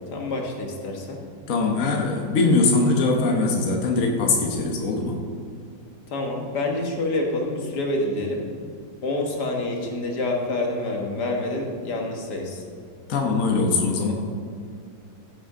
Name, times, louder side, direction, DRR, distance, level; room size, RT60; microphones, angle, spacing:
voice 1, 0.1-1.2 6.1-8.4 9.0-12.6, left 2 dB, 75° left, 1 dB, 2.0 m, -27 dB
voice 2, 1.5-5.2 13.1-14.1, left 3 dB, 55° left, 1 dB, 1.5 m, -21 dB
15.0 x 7.9 x 3.8 m, 2.3 s
omnidirectional pair, 1.8 m